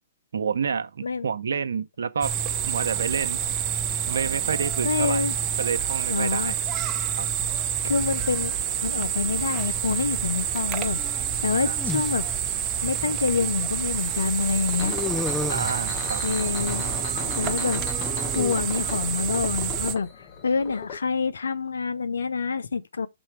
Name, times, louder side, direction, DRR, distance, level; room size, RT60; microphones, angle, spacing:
voice 1, 0.3-2.4 2.6-3.4 4.1-5.2 5.6-6.6 7.2-7.3 11.5-11.8 15.5-16.2, right 6 dB, 75° right, 0.8 m, -29 dB
sound 1, 2.2-19.9, right 9 dB, 30° right, 0.9 m, -28 dB
voice 2, 4.8-5.3 6.1-6.5 7.8-8.6 8.8-11.0 11.4-12.3 12.8-15.0 16.2-16.8 17.4-17.8 18.3-20.1 20.4-23.1, left 5 dB, 75° left, 0.7 m, -26 dB
sound 2, 11.0-12.1 13.1-13.2 14.8-16.0 17.2-18.6, left 4 dB, 10° left, 0.6 m, -33 dB
sound 3, 14.0-21.0, left 6 dB, 40° left, 1.4 m, -38 dB
6.3 x 4.2 x 4.6 m
figure-of-eight pair, 120°, 0 cm